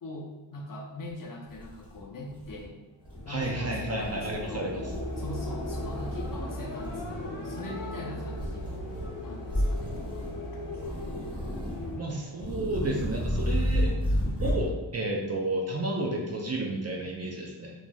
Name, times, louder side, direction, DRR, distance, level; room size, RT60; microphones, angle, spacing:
voice 1, 0.0-2.8 3.2-4.7 5.2-8.7 9.2-10.0 12.8-13.0, left 1 dB, 45° left, -2 dB, 0.6 m, -41 dB
sound 1, 1.1-1.2 1.5-2.6 3.0-3.5 3.9-4.5 4.8-6.5 6.8-7.3 8.3-9.1 9.4-10.4 10.8-12.0 12.3-14.7, equal, 10° right, 0.9 m, -32 dB
sound 2, 3.0-12.4, left 1 dB, 80° left, 0.8 m, -38 dB
voice 2, 3.3-4.8 12.0-13.9 14.4-17.7, right 1 dB, 35° right, 0 dB, 0.4 m, -31 dB
3.0 x 2.5 x 2.2 m, 1.1 s
wide cardioid pair, 100°, 45 cm